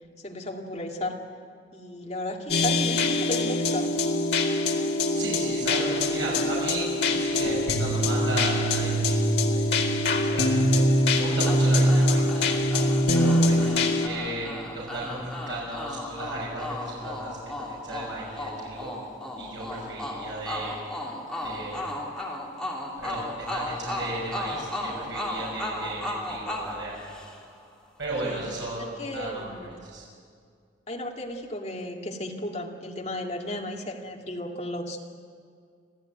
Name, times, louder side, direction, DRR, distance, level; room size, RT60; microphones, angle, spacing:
voice 1, 0.2-1.2 1.7-3.9 11.7-11.8 19.9-20.0 28.2-28.4 28.8-29.8 30.9-35.0, left 1 dB, 35° left, 0 dB, 2.3 m, -34 dB
sound 1, 2.5-14.1, left 1 dB, 60° left, 2.0 m, -23 dB
voice 2, 5.1-10.8 11.1-12.7 13.1-18.9 19.4-20.7 21.4-21.9 23.0-27.2 28.0-29.4 29.7-30.0, right 2 dB, 85° right, -5 dB, 6.1 m, -35 dB
sound 2, 11.5-27.6, left 1 dB, 5° left, 3.0 m, -35 dB
26.0 x 15.0 x 9.1 m, 2.2 s
head